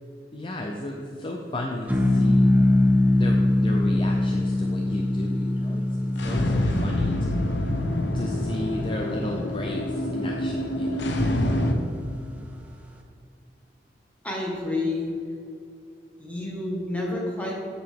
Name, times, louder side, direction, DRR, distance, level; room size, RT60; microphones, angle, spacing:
voice 1, 0.3-2.5 3.1-7.4 8.1-11.2, left 1 dB, 30° left, 1 dB, 0.5 m, -34 dB
sound 1, 1.9-12.4, left 1 dB, 10° right, 0.7 m, -24 dB
sound 2, 6.1-11.7, left 1 dB, 85° left, 0.8 m, -26 dB
voice 2, 14.2-15.1 16.2-17.5, left 2 dB, 10° left, -3 dB, 1.6 m, -29 dB
8.6 x 6.7 x 3.6 m, 2.5 s
head